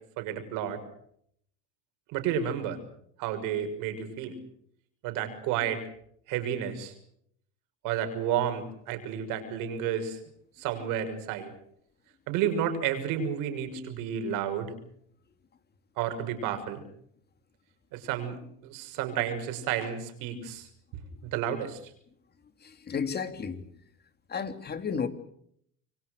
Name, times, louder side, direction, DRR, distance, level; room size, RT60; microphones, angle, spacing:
voice 1, 0.2-0.8 2.1-2.8 3.2-4.3 5.0-5.8 6.3-6.9 7.8-10.2 10.6-11.5 12.3-14.7 16.0-16.8 17.9-18.4 18.6-20.7 20.9-21.8, right 9 dB, 75° right, 8 dB, 6.2 m, -31 dB
voice 2, 22.6-23.7 24.3-25.1, left 6 dB, 30° left, 9 dB, 3.0 m, -32 dB
28.0 x 23.5 x 6.6 m, 0.69 s
cardioid pair, 115°, 32 cm